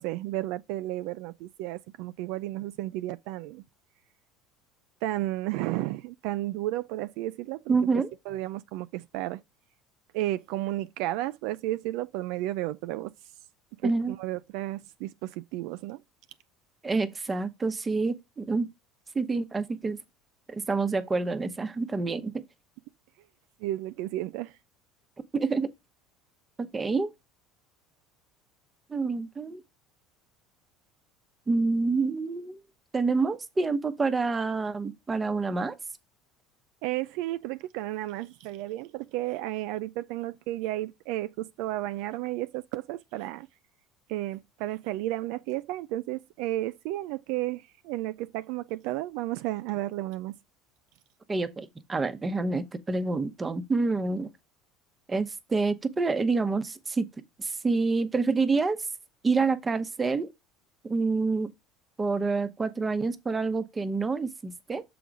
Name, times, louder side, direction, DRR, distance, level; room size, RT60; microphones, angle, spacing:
voice 1, 0.0-3.6 5.0-7.7 8.3-9.4 10.1-13.1 13.8-16.0 23.6-24.6 36.8-43.5 44.1-50.3, right 16 dB, 75° right, 0.3 m, -33 dB
voice 2, 7.7-8.1 13.8-14.1 16.8-18.7 19.1-20.0 20.5-22.3 25.3-25.7 26.6-27.1 28.9-29.6 31.5-32.6 32.9-35.8 51.3-54.3 55.1-57.1 57.4-58.8 59.2-60.3 60.8-61.5 62.0-64.8, right 4 dB, 20° right, 1.0 m, -27 dB
6.9 x 3.8 x 4.7 m
supercardioid pair, 100°, 0 cm